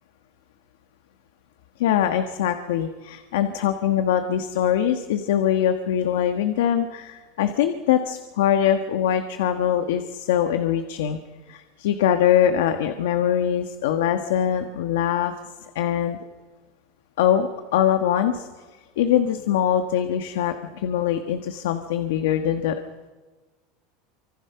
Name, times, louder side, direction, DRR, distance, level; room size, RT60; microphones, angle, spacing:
voice 1, 1.8-11.2 11.5-15.3 15.7-16.2 17.2-18.5 19.0-22.7, left 10 dB, 85° left, 7 dB, 1.6 m, -22 dB
28.0 x 26.0 x 5.9 m, 1.3 s
supercardioid pair, 180°, 0 cm